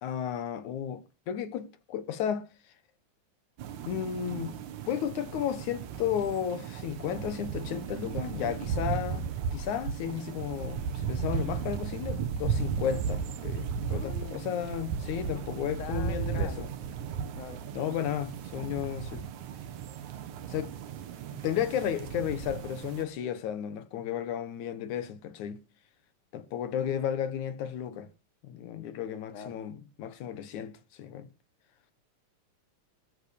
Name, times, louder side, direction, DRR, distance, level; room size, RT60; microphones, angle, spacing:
voice 1, 0.0-2.5 3.9-4.5 4.9-16.7 17.7-19.2 20.5-20.7 21.3-25.6 26.3-28.1 28.4-31.3, left 9 dB, 70° left, 2.6 m, -33 dB
sound 1, 3.6-23.0, right 7 dB, 70° right, 2.6 m, -35 dB
voice 2, 13.9-14.7 15.8-16.7 17.0-17.6 26.7-26.9 29.3-29.6, left 7 dB, 40° left, 1.1 m, -44 dB
14.0 x 8.1 x 6.6 m
omnidirectional pair, 3.6 m